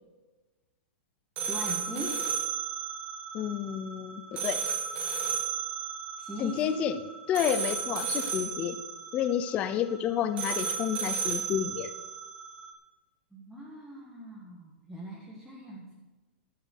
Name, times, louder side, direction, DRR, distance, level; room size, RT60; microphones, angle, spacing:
sound 1, 1.4-12.7, right 6 dB, 20° right, 1.8 m, -34 dB
voice 1, 1.5-2.2 6.2-6.9 13.3-15.9, right 1 dB, ahead, -4 dB, 1.5 m, -40 dB
voice 2, 3.3-4.6 6.4-7.0 7.3-8.8 9.1-11.9, left 10 dB, 20° left, 12 dB, 0.6 m, -30 dB
12.5 x 8.1 x 6.6 m, 1.2 s
supercardioid pair, 170°, 6 cm